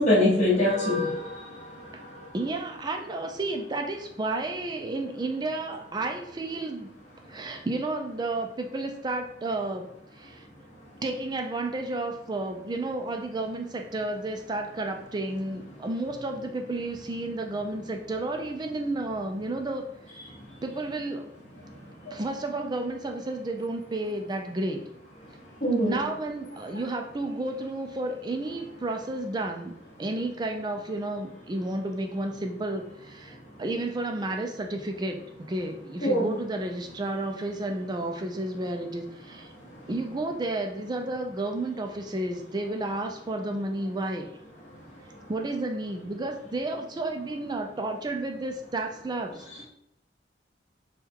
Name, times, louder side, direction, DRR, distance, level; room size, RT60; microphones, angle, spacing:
voice 1, 0.0-1.3 22.1-22.2 25.6-26.0 36.0-36.3, left 1 dB, 45° left, -6 dB, 1.3 m, -23 dB
voice 2, 2.3-6.9 7.3-9.9 10.2-10.4 11.0-19.9 20.6-21.3 22.1-24.8 25.9-35.2 35.5-39.5 39.9-44.3 45.3-49.4, right 2 dB, 25° right, 4 dB, 0.4 m, -32 dB
3.5 x 2.3 x 4.4 m, 0.77 s
head